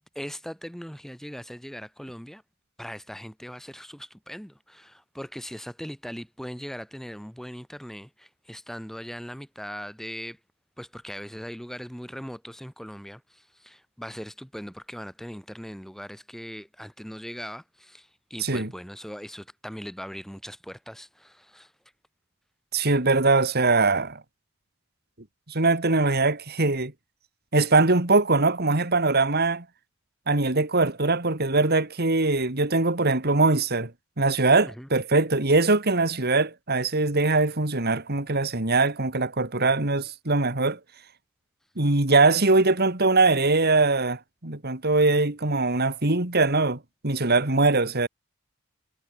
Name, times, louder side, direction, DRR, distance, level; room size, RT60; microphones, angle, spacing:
voice 1, 0.0-2.4 2.8-10.4 10.8-21.7 34.6-34.9, equal, ahead, 2.9 m, -40 dB
voice 2, 18.4-18.7 22.7-24.2 25.5-26.9 27.5-29.6 30.3-33.9 34.2-40.8 41.8-48.1, right 3 dB, 50° right, 2.6 m, -22 dB
head